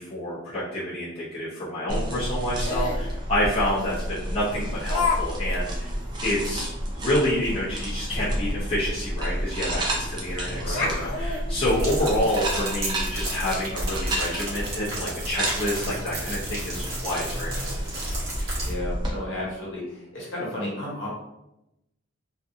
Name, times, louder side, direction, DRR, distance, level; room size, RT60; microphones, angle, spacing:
voice 1, 0.0-5.9 6.2-17.9, left 1 dB, 25° left, -10 dB, 0.6 m, -28 dB
sound 1, 1.9-19.1, equal, 20° right, 0.3 m, -30 dB
Laughter, 2.6-3.1 3.9-4.0 4.9-5.2 5.5-5.6 6.1-6.2 6.5-6.7 8.6-8.7 9.0-9.1 10.0-10.3 10.7-12.3, left 4 dB, 75° left, 0.5 m, -29 dB
voice 2, 10.4-10.9 18.6-21.1, left 1 dB, 60° left, -5 dB, 1.0 m, -33 dB
sound 2, 11.7-18.7, right 2 dB, 45° right, 0.8 m, -35 dB
2.6 x 2.4 x 2.5 m, 0.89 s
head